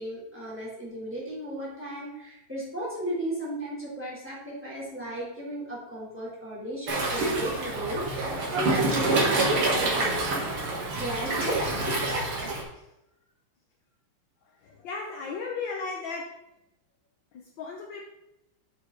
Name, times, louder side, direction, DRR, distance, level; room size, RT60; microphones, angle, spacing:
voice 1, 0.0-9.3 9.7-10.2 10.6-12.1, right 1 dB, 5° right, -6 dB, 3.1 m, -35 dB
Waves surf, 6.9-12.6, right 2 dB, 80° right, 2.5 m, -27 dB
voice 2, 14.6-16.4 17.3-18.0, left 4 dB, 70° left, 1 dB, 1.4 m, -35 dB
7.9 x 6.2 x 3.8 m, 0.88 s
omnidirectional pair, 2.4 m